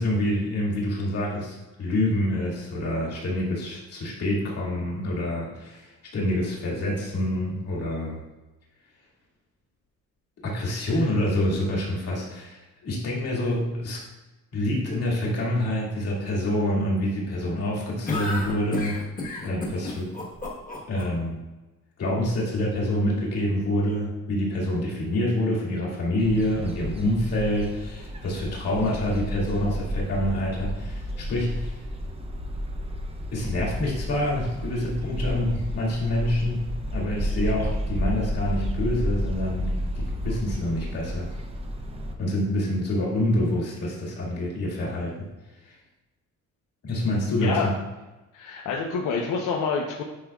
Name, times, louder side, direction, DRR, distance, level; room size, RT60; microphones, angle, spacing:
voice 1, 0.0-8.2 10.4-14.0 14.5-19.0 19.4-20.1 20.9-21.4 22.0-31.8 33.3-36.6 36.9-41.3 42.2-45.1 46.8-47.7, left 1 dB, 50° left, -4 dB, 2.2 m, -27 dB
sound 1, 18.1-21.0, left 2 dB, 30° left, 1.3 m, -31 dB
sound 2, 26.2-42.1, equal, 20° right, 0.6 m, -31 dB
voice 2, 48.3-50.0, left 5 dB, 85° left, 0 dB, 0.9 m, -27 dB
10.0 x 5.3 x 2.4 m, 1.1 s
cardioid pair, 170°, 31 cm